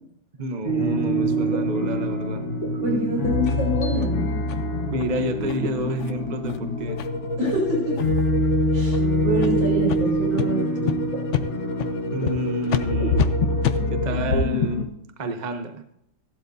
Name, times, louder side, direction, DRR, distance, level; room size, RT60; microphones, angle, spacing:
voice 1, 0.4-2.4 3.5-3.6 4.8-7.0 12.1-13.2 13.9-14.9 15.2-15.8, right 1 dB, 45° right, 6 dB, 0.5 m, -29 dB
sound 1, 0.6-14.8, equal, 90° left, 2.4 m, -25 dB
voice 2, 2.8-4.4 7.4-8.0 8.7-9.0 9.2-11.0, equal, 85° right, -3 dB, 5.4 m, -26 dB
sound 2, 3.5-3.6 4.0-4.1 4.5-4.6 5.0-5.1 5.5-5.6 6.0-6.1 6.5-6.6 7.0-7.1 7.5-7.6 8.0-8.3 8.9-9.0 9.4-9.5 9.9-10.0 10.4-10.5 10.9-11.0 11.3-11.5 11.8-11.9 12.3-12.4 12.7-12.8 13.2-13.3 13.6-13.8, left 11 dB, 70° left, 0.6 m, -27 dB
15.5 x 12.0 x 2.7 m, 0.77 s
omnidirectional pair, 2.0 m